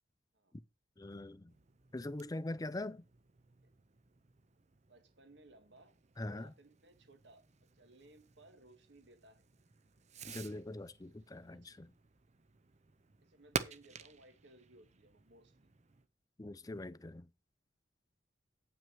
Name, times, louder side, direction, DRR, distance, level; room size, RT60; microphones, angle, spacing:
voice 1, 1.0-1.5 1.9-3.0 6.2-6.5 10.3-11.9 16.4-17.3, left 2 dB, 20° left, 0.5 m, -42 dB
Fireworks, 1.5-16.1, right 5 dB, 40° right, 0.7 m, -50 dB
voice 2, 4.8-9.4 11.4-11.9 13.2-15.7, right 1 dB, 65° right, 2.0 m, -62 dB
9.0 x 6.1 x 6.0 m
head